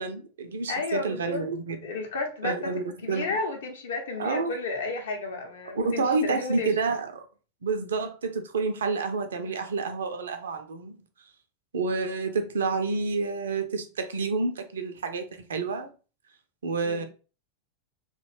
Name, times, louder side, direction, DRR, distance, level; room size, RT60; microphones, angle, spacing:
voice 1, 0.0-1.8 2.4-3.3 4.2-4.5 5.8-7.2 7.6-11.0 11.7-15.9 16.6-17.0, right 4 dB, 65° right, 0.4 m, -29 dB
voice 2, 0.7-1.4 1.8-2.7 3.0-6.7 16.8-17.1, left 3 dB, 60° left, 0.6 m, -32 dB
2.5 x 2.2 x 3.0 m
figure-of-eight pair, 90°, 0 cm